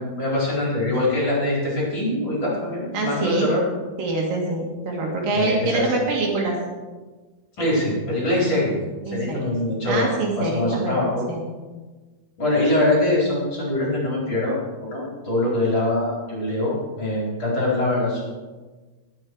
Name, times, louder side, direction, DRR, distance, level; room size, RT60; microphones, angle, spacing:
voice 1, 0.0-3.6 5.3-6.0 7.6-8.7 9.1-11.2 12.4-18.3, left 1 dB, 30° left, -5 dB, 4.8 m, -23 dB
voice 2, 2.9-3.5 4.0-6.6 9.1-9.6 9.8-11.0 11.3-11.5, right 2 dB, 65° right, -1 dB, 3.5 m, -25 dB
20.5 x 7.5 x 4.7 m, 1.3 s
omnidirectional pair, 4.4 m